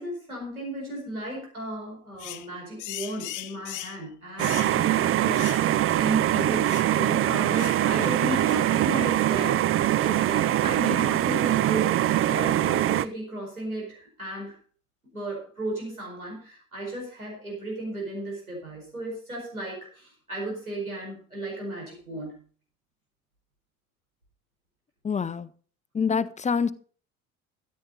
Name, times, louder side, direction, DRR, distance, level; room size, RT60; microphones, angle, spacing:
voice 1, 0.0-9.6 10.0-14.6 15.1-22.3, right 1 dB, 90° right, -2 dB, 4.8 m, -35 dB
sound 1, 2.2-2.5 2.8-4.0 4.4-4.8 5.3-5.7 5.9-6.0 6.6-6.9 7.5-7.8 8.4-8.7, left 14 dB, 45° left, 1.0 m, -38 dB
sound 2, 4.4-13.0, right 13 dB, 30° right, 0.5 m, -23 dB
voice 2, 25.0-25.5 25.9-26.7, left 6 dB, 15° left, 16 dB, 0.7 m, -26 dB
13.5 x 9.6 x 4.1 m, 0.43 s
figure-of-eight pair, 55°, 42 cm